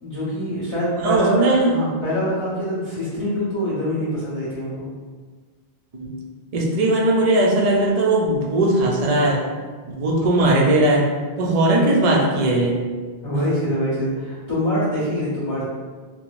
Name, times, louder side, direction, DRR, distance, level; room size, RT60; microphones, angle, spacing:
voice 1, 0.0-4.9 10.3-10.4 13.2-15.6, equal, 20° left, -13 dB, 1.3 m, -24 dB
voice 2, 1.0-1.7 5.9-6.2 6.5-9.4 9.9-11.1 11.4-12.8 13.3-13.4, right 1 dB, 50° right, -2 dB, 0.4 m, -18 dB
3.1 x 2.1 x 2.4 m, 1.5 s
omnidirectional pair, 1.1 m